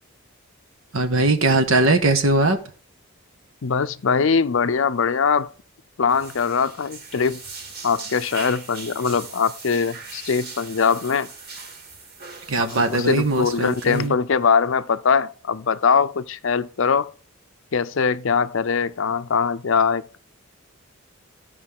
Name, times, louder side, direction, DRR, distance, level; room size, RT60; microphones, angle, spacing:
voice 1, 0.9-2.6 12.5-14.2, right 2 dB, 70° right, 1.5 m, -20 dB
voice 2, 3.6-5.5 6.0-7.4 7.8-11.3 12.6-17.1 17.7-20.2, left 5 dB, 60° left, 0.5 m, -22 dB
sound 1, 6.1-14.1, right 4 dB, 45° right, 2.3 m, -40 dB
15.0 x 5.3 x 3.6 m
head